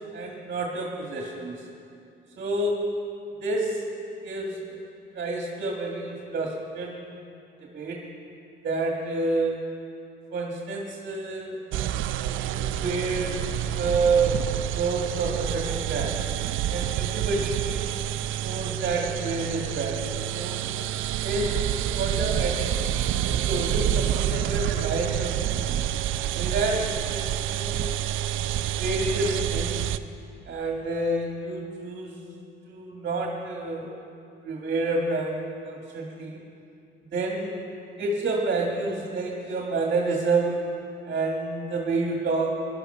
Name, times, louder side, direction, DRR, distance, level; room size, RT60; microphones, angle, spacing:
voice 1, 0.1-1.6 2.4-2.7 3.4-3.8 4.2-4.8 5.1-7.2 7.6-8.0 8.6-9.6 10.3-11.6 12.4-13.4 13.8-14.4 14.7-16.2 16.7-17.8 18.4-20.0 20.3-20.6 21.2-21.6 22.0-25.8 26.3-27.9 28.8-29.7 30.5-32.2 32.7-33.9 34.4-36.4 37.1-37.5 38.0-40.7 41.1-42.5, right 3 dB, 55° right, -1 dB, 2.0 m, -29 dB
sound 1, 11.7-30.0, right 11 dB, 85° right, 0.5 m, -28 dB
18.5 x 12.0 x 5.6 m, 2.6 s
cardioid pair, 90°, 20 cm